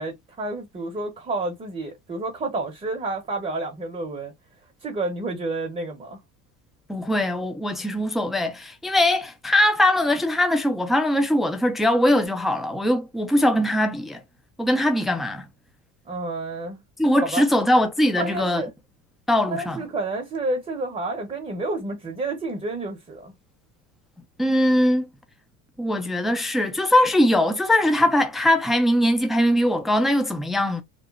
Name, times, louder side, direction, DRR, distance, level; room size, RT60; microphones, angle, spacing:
voice 1, 0.0-4.3 4.8-6.2 16.1-16.8 17.2-17.5 18.2-18.7 19.5-23.3, right 2 dB, 20° right, 0.7 m, -30 dB
voice 2, 6.9-14.2 14.6-15.5 17.0-18.6 19.3-19.8 24.4-25.1 25.8-30.8, left 1 dB, ahead, 0.4 m, -21 dB
3.0 x 2.0 x 2.3 m
supercardioid pair, 105°, 36 cm